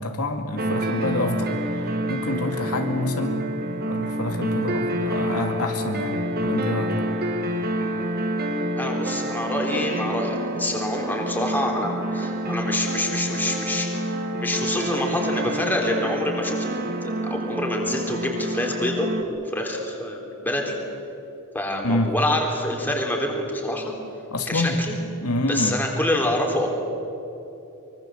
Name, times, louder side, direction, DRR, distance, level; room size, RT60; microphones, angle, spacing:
voice 1, 0.0-3.5 3.8-7.0 21.8-22.1 24.3-24.8 25.2-25.8, left 1 dB, 80° left, 4 dB, 2.3 m, -27 dB
sound 1, 0.6-19.2, right 1 dB, 45° right, 1.8 m, -28 dB
voice 2, 8.8-13.9 14.4-16.6 17.0-20.8 21.5-23.9 24.5-24.9 25.5-26.7, left 1 dB, 10° left, 0 dB, 3.8 m, -26 dB
24.5 x 23.0 x 7.8 m, 2.9 s
head